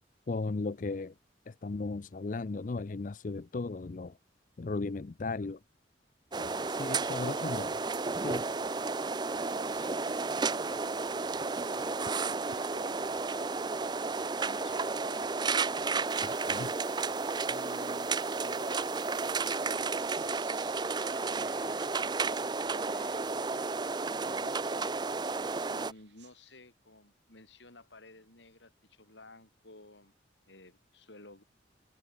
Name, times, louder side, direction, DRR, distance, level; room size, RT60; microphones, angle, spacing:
voice 1, 0.3-1.1 1.5-4.1 4.6-5.6 6.4-7.8 8.2-8.4 16.2-16.7, left 3 dB, 45° left, 0.5 m, -36 dB
sound 1, 6.3-25.9, right 4 dB, 25° right, 0.5 m, -32 dB
voice 2, 9.3-16.2 17.5-18.1 18.4-23.8 24.1-24.8 25.7-30.2 30.5-31.4, left 2 dB, 75° left, 4.9 m, -54 dB
sound 2, 16.1-24.5 25.5-26.6, right 11 dB, 70° right, 6.9 m, -56 dB
head